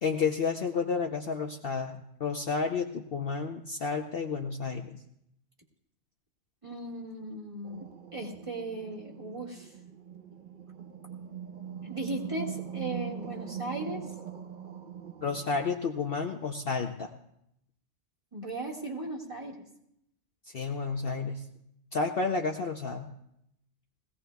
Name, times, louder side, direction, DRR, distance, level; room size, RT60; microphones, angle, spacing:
voice 1, 0.0-5.0 15.2-17.1 20.5-21.4 21.9-23.1, left 5 dB, 55° left, 4 dB, 0.9 m, -31 dB
voice 2, 6.6-7.9 8.1-9.7 11.8-14.1 18.3-19.6, right 2 dB, 25° right, -3 dB, 1.9 m, -37 dB
sound 1, 7.6-15.6, right 8 dB, 45° right, 0.8 m, -41 dB
20.5 x 16.5 x 2.3 m, 0.77 s
omnidirectional pair, 1.3 m